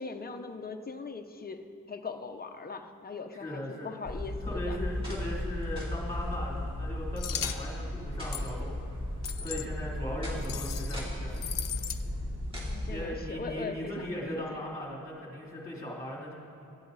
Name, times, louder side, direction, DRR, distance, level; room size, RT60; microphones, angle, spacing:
voice 1, 0.0-4.8 12.6-14.6, left 4 dB, 30° left, 6 dB, 0.7 m, -40 dB
voice 2, 3.3-3.9 4.4-8.9 9.4-11.5 12.9-16.3, left 1 dB, 10° left, -4 dB, 2.9 m, -38 dB
sound 1, 4.0-12.9, left 1 dB, 15° right, 2.8 m, -35 dB
sound 2, 7.2-7.6 8.3-8.5 9.2-9.7 10.4-11.0 11.3-12.0, left 9 dB, 75° left, 0.6 m, -37 dB
19.0 x 13.0 x 4.0 m, 2.9 s
wide cardioid pair, 175°, 33 cm